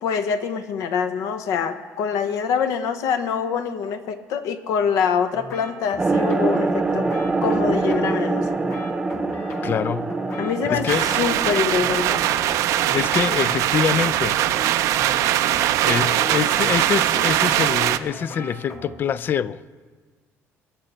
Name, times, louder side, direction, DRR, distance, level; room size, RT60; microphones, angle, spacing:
voice 1, 0.0-7.1 7.4-8.6 10.4-12.2, left 6 dB, 75° left, 1.0 m, -25 dB
sound 1, 5.3-18.9, left 2 dB, 55° left, 2.0 m, -38 dB
sound 2, 6.0-13.9, right 3 dB, 15° right, 0.8 m, -25 dB
voice 2, 9.6-10.2 10.7-11.2 12.9-14.4 15.8-19.6, left 8 dB, 40° left, 0.3 m, -25 dB
sound 3, 10.9-18.0, right 13 dB, 70° right, 0.5 m, -21 dB
23.0 x 10.0 x 4.3 m
cardioid pair, 145°, 6 cm